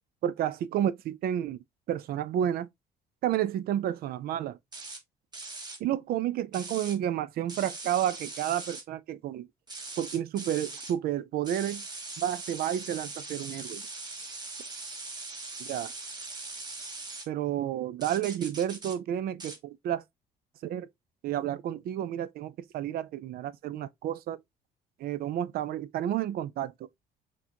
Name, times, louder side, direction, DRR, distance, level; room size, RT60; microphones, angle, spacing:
voice 1, 0.2-1.6 1.9-2.7 3.2-4.6 5.8-9.5 10.0-11.8 12.2-13.8 15.6-15.9 17.3-20.0 20.6-20.9 21.2-24.4 25.0-26.7, right 11 dB, 65° right, 0.5 m, -31 dB
sound 1, 4.7-5.0 5.3-5.8 6.5-7.0 7.5-8.8 9.7-10.9 11.4-17.3 18.0-19.0 19.4-19.6, right 3 dB, 25° right, 1.1 m, -41 dB
6.1 x 2.3 x 2.8 m
cardioid pair, 110°, 17 cm